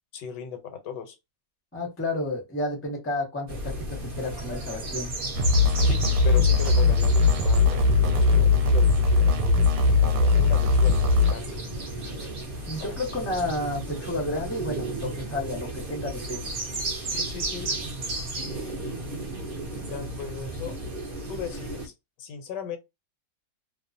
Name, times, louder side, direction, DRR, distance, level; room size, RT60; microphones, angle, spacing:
voice 1, 0.1-1.2 5.8-9.7 10.0-11.6 12.9-13.2 17.1-17.7 18.3-19.3 19.9-20.8 21.3-21.9 22.2-22.8, left 7 dB, 75° left, 1.3 m, -38 dB
voice 2, 1.7-5.1 12.6-16.4, left 1 dB, 15° left, 0.4 m, -31 dB
sound 1, 3.5-21.9, right 2 dB, 50° right, 0.7 m, -34 dB
sound 2, 5.4-11.3, left 3 dB, 75° right, 1.2 m, -20 dB
2.9 x 2.0 x 2.5 m
omnidirectional pair, 1.9 m